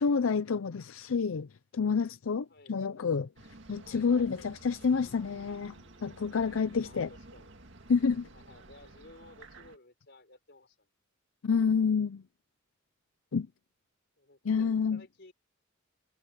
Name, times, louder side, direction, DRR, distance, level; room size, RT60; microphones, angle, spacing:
voice 1, 0.0-1.5 1.7-3.3 3.7-5.8 6.0-7.1 7.9-8.3 11.4-12.2 13.3-13.5 14.4-15.0, left 5 dB, 90° left, 0.5 m, -28 dB
sound 1, 3.4-9.8, right 2 dB, 65° right, 2.1 m, -52 dB
Acoustic guitar, 5.0-8.6, equal, 20° left, 6.4 m, -68 dB
voice 2, 6.7-7.5 8.3-10.9 14.2-15.3, left 2 dB, 55° left, 4.8 m, -56 dB
head